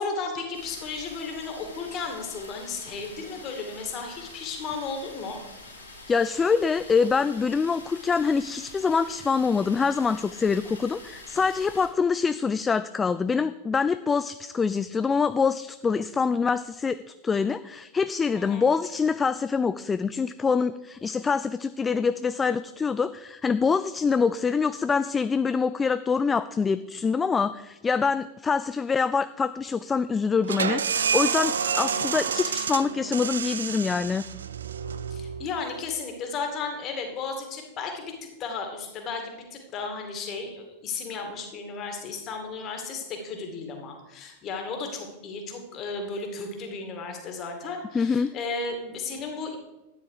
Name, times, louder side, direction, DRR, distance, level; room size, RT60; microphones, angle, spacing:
voice 1, 0.0-5.4 18.3-18.7 31.7-32.2 35.1-38.1 38.4-49.6, left 4 dB, 35° left, 4 dB, 2.3 m, -34 dB
sound 1, 0.5-11.9, left 2 dB, 80° left, 3.1 m, -46 dB
voice 2, 6.1-34.2 47.9-48.3, left 5 dB, 15° left, 13 dB, 0.3 m, -25 dB
sound 2, 30.4-35.9, right 7 dB, 70° right, 0.5 m, -29 dB
12.0 x 9.3 x 4.8 m, 1.0 s
figure-of-eight pair, 90°, 0 cm